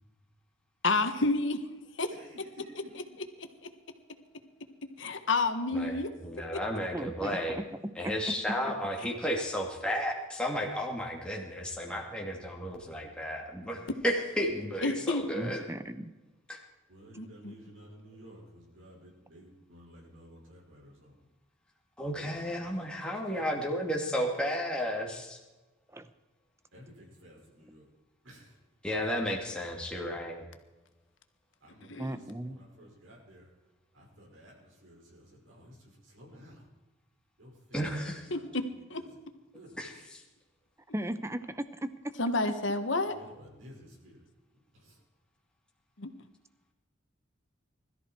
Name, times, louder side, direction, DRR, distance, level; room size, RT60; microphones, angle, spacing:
voice 1, 0.8-1.6 2.0-2.1 5.0-6.1 14.8-15.2 17.2-17.5 31.9-32.0 38.3-38.4 38.9-39.0 42.2-43.1 46.0-46.1, left 3 dB, 65° left, 8 dB, 1.5 m, -29 dB
voice 2, 2.1-3.0 16.9-21.3 22.2-23.9 26.7-27.9 28.2-28.6 31.6-33.5 33.9-36.7 37.4-39.2 39.5-40.1 43.0-44.3 44.5-45.0, equal, 75° right, -4 dB, 5.8 m, -54 dB
voice 3, 5.7-7.6 7.9-15.6 16.5-16.6 22.0-25.4 28.8-30.5 37.7-38.2 39.8-39.9, equal, 5° left, -1 dB, 2.4 m, -33 dB
voice 4, 6.9-7.6 8.0-8.1 15.3-16.1 25.9-26.1 32.0-32.6 40.9-41.9, right 1 dB, 15° right, 11 dB, 0.8 m, -36 dB
21.5 x 13.5 x 4.6 m, 1.1 s
head